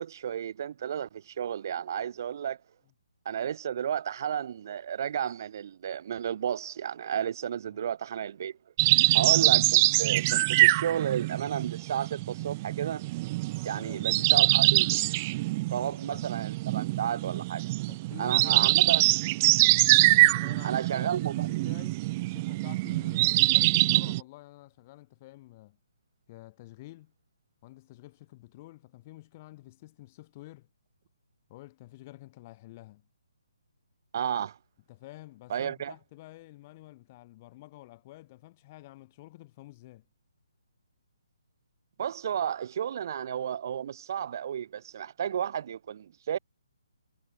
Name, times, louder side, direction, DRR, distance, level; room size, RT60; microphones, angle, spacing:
voice 1, 0.0-2.6 3.2-8.5 9.1-13.1 13.6-15.0 15.7-17.7 18.2-19.0 20.6-21.5 34.1-34.6 35.5-35.9 42.0-46.4, right 9 dB, 45° right, 0.7 m, -32 dB
sound 1, 8.8-24.2, right 20 dB, 25° right, 0.3 m, -24 dB
voice 2, 13.6-14.3 15.8-16.3 17.9-18.8 20.1-25.8 26.3-27.1 27.6-30.7 31.5-33.1 34.9-40.1, left 18 dB, 25° left, 7.8 m, -50 dB
hypercardioid pair, 160°, 3 cm